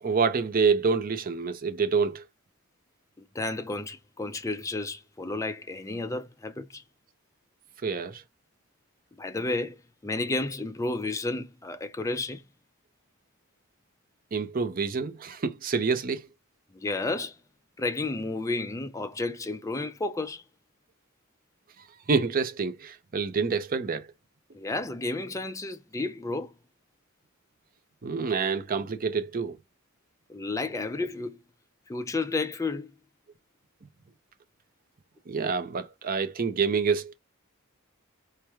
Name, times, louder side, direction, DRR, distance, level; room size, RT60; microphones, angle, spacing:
voice 1, 0.0-2.2 7.8-8.2 14.3-16.3 22.1-24.1 28.0-29.6 35.3-37.1, right 5 dB, 40° right, 0.6 m, -27 dB
voice 2, 3.2-6.8 9.1-12.4 16.7-17.4 17.8-20.4 24.5-26.5 30.3-31.4 31.9-32.9, left 2 dB, 15° left, 0.5 m, -32 dB
4.5 x 2.1 x 3.4 m
head